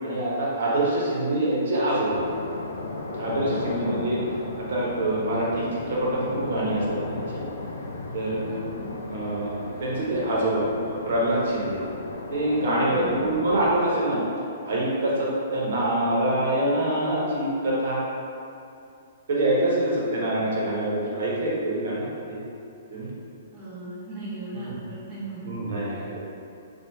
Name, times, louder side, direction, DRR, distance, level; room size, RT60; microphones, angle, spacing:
voice 1, 0.0-2.2 3.2-4.2 4.6-7.4 8.1-8.4 9.1-9.5 9.8-11.8 12.3-14.2 14.6-18.0 19.3-22.4 22.9-23.1 24.5-24.8 25.4-26.2, right 1 dB, 60° right, -5 dB, 0.9 m, -25 dB
sound 1, 2.1-13.8, left 2 dB, 75° left, 0.4 m, -35 dB
voice 2, 3.7-4.1 8.5-8.8 12.8-13.3 20.1-20.5 23.5-25.5 25.9-26.1, right 2 dB, 35° right, -10 dB, 1.0 m, -38 dB
3.1 x 2.3 x 3.4 m, 2.6 s
figure-of-eight pair, 120°, 0 cm